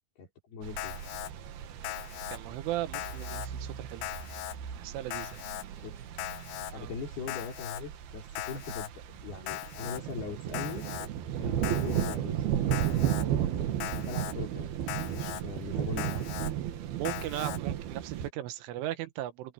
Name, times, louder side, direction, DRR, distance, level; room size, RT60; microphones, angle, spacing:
voice 1, 0.2-0.9 5.8-6.0 6.7-10.9 11.4-13.0 13.9-14.7 15.0-16.4, left 4 dB, 55° left, 6.5 m, -41 dB
sound 1, 0.6-18.3, right 10 dB, 65° right, 3.0 m, -34 dB
Alarm, 0.8-1.3 1.8-2.4 2.9-3.5 4.0-4.6 5.1-5.6 6.2-6.7 7.3-7.8 8.4-8.9 9.5-10.0 10.5-11.1 11.6-12.2 12.7-13.2 13.8-14.3 14.9-15.4 16.0-16.5 17.1-17.6, left 17 dB, 85° left, 3.0 m, -39 dB
voice 2, 2.3-4.1 4.8-5.4 6.7-6.9 17.0-19.5, right 13 dB, 90° right, 3.8 m, -37 dB
open air
omnidirectional pair, 5.5 m